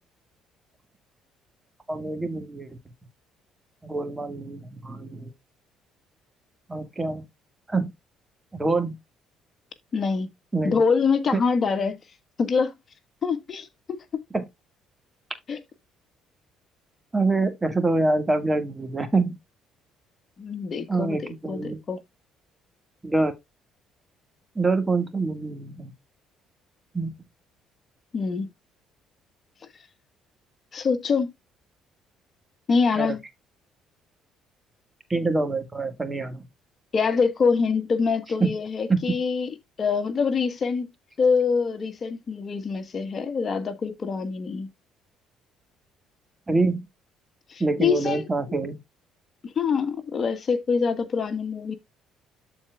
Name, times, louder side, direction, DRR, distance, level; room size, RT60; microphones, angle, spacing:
voice 1, 1.9-2.8 3.8-5.3 6.7-7.2 7.7-7.9 8.5-9.0 10.5-10.8 14.3-14.4 17.1-19.4 20.9-21.8 23.0-23.3 24.6-25.9 26.9-27.2 33.0-33.1 35.1-36.4 38.4-38.5 38.9-39.0 46.5-46.8 47.6-48.7, right 3 dB, 20° right, 1.9 m, -25 dB
voice 2, 9.9-10.3 10.6-12.0 12.4-12.7 13.2-14.0 15.5-15.6 20.4-22.0 28.1-28.5 30.7-31.3 32.7-33.2 36.9-40.9 41.2-44.7 47.5-48.3 49.4-51.7, left 5 dB, 45° left, 1.4 m, -25 dB
13.0 x 4.4 x 2.4 m
supercardioid pair, 70°, 0 cm